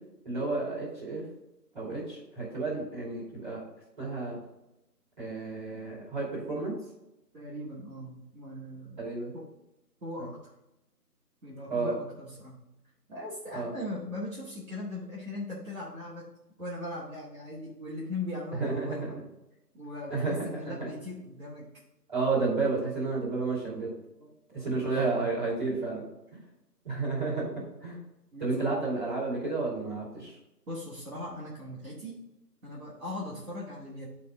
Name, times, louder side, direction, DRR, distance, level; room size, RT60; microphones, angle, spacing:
voice 1, 0.2-1.2 1.7-3.6 4.0-4.4 5.2-6.7 9.0-9.3 10.2-10.3 11.7-11.9 13.5-13.7 18.6-19.2 20.1-20.9 22.1-23.9 24.5-26.0 26.8-27.5 27.8-28.0 28.4-30.3, right 3 dB, 30° right, -7 dB, 3.0 m, -31 dB
voice 2, 7.3-9.0 9.3-9.5 10.0-10.5 11.4-12.6 13.1-16.3 16.6-19.0 19.7-21.7 24.2-25.0 28.3-28.5 30.7-32.2 32.6-34.1, left 1 dB, 55° right, -7 dB, 2.2 m, -39 dB
10.0 x 4.2 x 3.9 m, 0.91 s
figure-of-eight pair, 170°, 49 cm